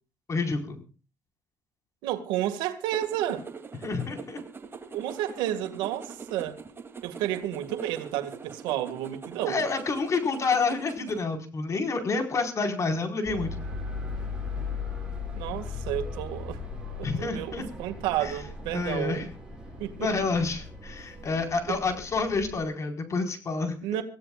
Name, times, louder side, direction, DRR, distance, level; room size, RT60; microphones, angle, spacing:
voice 1, 0.3-0.8 3.8-4.4 9.5-13.5 17.0-17.7 18.2-18.3 18.7-19.3 20.0-23.7, left 4 dB, 40° left, 4.7 m, -28 dB
voice 2, 2.0-3.5 4.9-6.6 7.0-9.7 15.3-16.6 17.0-19.3 19.8-20.3 21.7-21.8 23.8-24.0, right 12 dB, 85° right, 1.9 m, -31 dB
sound 1, 2.9-11.2, right 5 dB, 30° right, 2.7 m, -43 dB
sound 2, 13.3-22.6, left 4 dB, 10° right, 8.0 m, -38 dB
25.5 x 16.0 x 2.4 m
supercardioid pair, 85°, 8 cm